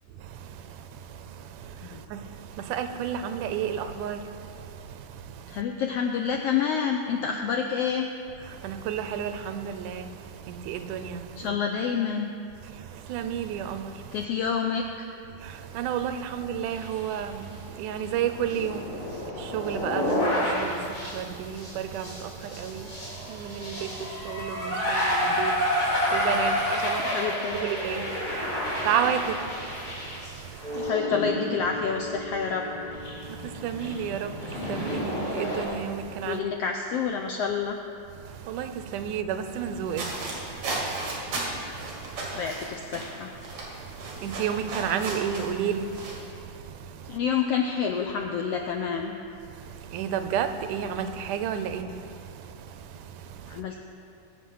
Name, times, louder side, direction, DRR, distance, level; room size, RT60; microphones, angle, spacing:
voice 1, 0.2-5.6 8.4-11.6 12.6-14.2 15.4-27.2 27.5-30.9 33.1-36.4 38.1-42.4 43.6-47.2 49.5-53.6, right 8 dB, 85° right, 2.2 m, -33 dB
voice 2, 5.5-8.1 11.4-12.3 14.1-15.1 27.0-27.6 30.7-32.7 36.2-37.8 42.3-43.3 47.1-49.1 53.5-53.8, left 6 dB, 85° left, 1.4 m, -28 dB
sound 1, 16.7-17.1 17.4-17.5 18.0-35.6, left 1 dB, 25° left, 4.2 m, -30 dB
Mallet percussion, 30.6-35.0, left 2 dB, 40° left, 0.7 m, -38 dB
sound 2, 39.9-46.2, right 2 dB, 60° right, 3.5 m, -35 dB
20.5 x 7.5 x 5.6 m
omnidirectional pair, 3.6 m